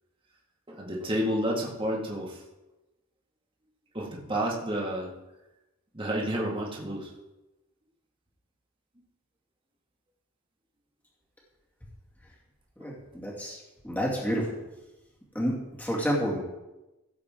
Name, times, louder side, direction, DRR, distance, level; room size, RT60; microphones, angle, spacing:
voice 1, 0.7-2.4 3.9-5.1 5.9-7.1 12.8-12.9, equal, 25° right, -2 dB, 2.0 m, -30 dB
voice 2, 12.8-14.5 15.3-16.4, equal, 10° left, -3 dB, 2.3 m, -30 dB
17.0 x 7.6 x 3.7 m, 1.0 s
head